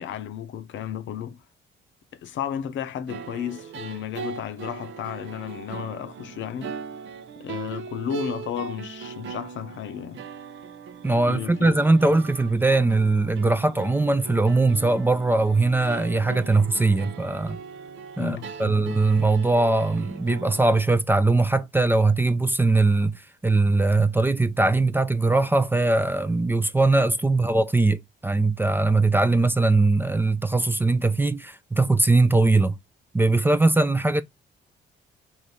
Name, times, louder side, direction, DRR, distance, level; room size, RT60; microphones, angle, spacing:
voice 1, 0.0-1.4 2.1-6.8 7.4-10.2 11.3-11.8 12.0-12.2 18.2-18.9, left 9 dB, 70° left, 0.7 m, -33 dB
sound 1, 3.1-20.8, right 7 dB, 70° right, 0.6 m, -39 dB
voice 2, 11.0-17.6 18.2-32.8 33.1-34.2, right 2 dB, 10° right, 0.4 m, -21 dB
3.4 x 2.5 x 4.0 m
cardioid pair, 90°, 20 cm